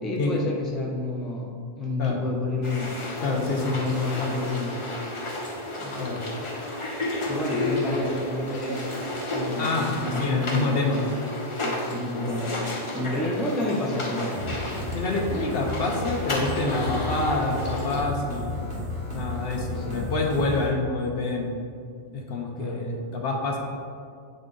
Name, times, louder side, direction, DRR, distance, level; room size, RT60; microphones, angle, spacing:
voice 1, 0.0-3.0 3.3-4.8 5.8-6.2 7.3-8.9 9.3-10.8 11.6-12.5 12.9-14.5 19.8-20.1 22.6-22.8, left 2 dB, ahead, -2 dB, 0.5 m, -30 dB
sound 1, 2.6-18.0, left 2 dB, 35° left, 0.7 m, -32 dB
voice 2, 3.2-3.8 6.0-6.2 9.6-11.0 13.0-13.2 14.9-18.5 19.1-21.5 22.1-23.6, left 2 dB, 65° left, 1 dB, 1.0 m, -27 dB
sound 2, 14.3-20.7, left 1 dB, 55° right, 1.5 m, -33 dB
7.9 x 4.0 x 3.7 m, 2.3 s
omnidirectional pair, 1.1 m